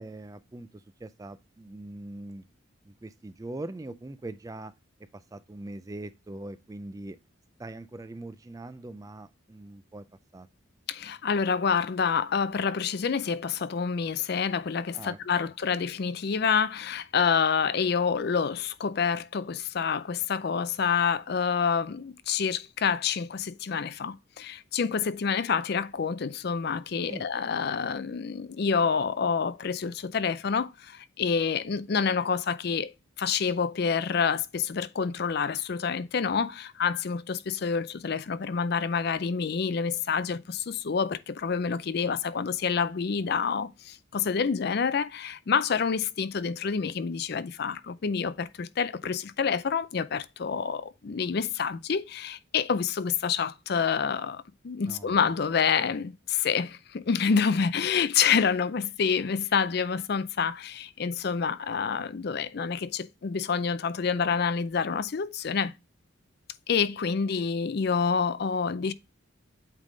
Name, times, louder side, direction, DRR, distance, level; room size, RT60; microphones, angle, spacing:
voice 1, 0.0-2.5 2.8-4.7 5.0-7.2 7.6-10.1 10.3-10.5 14.9-15.5 27.1-27.3 54.8-55.3, right 2 dB, 15° right, 0.3 m, -42 dB
voice 2, 10.9-32.9 33.2-65.7 66.7-68.9, left 6 dB, 55° left, 0.4 m, -28 dB
8.2 x 3.6 x 3.8 m
head